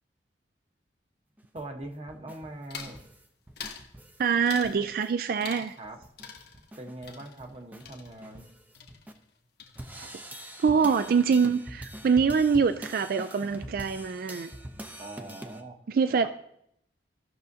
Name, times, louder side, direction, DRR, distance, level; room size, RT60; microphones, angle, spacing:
sound 1, 1.4-4.3 4.6-5.1 5.5-5.6 5.8-9.1 9.8-15.6, right 1 dB, 10° right, 0.6 m, -44 dB
voice 1, 1.5-3.0 5.8-6.0 6.8-8.5 15.0-15.8, right 2 dB, 35° right, 3 dB, 1.0 m, -42 dB
sound 2, 2.7-3.0 3.6-3.9 4.5-4.8 5.4-5.9 6.2-8.5 8.7-9.3 9.6-10.1, left 6 dB, 65° left, 1.1 m, -44 dB
voice 2, 4.2-5.8 9.9-10.1 10.6-14.5 15.9-16.3, right 5 dB, 55° right, 11 dB, 0.3 m, -24 dB
15.5 x 6.3 x 2.7 m, 0.74 s
head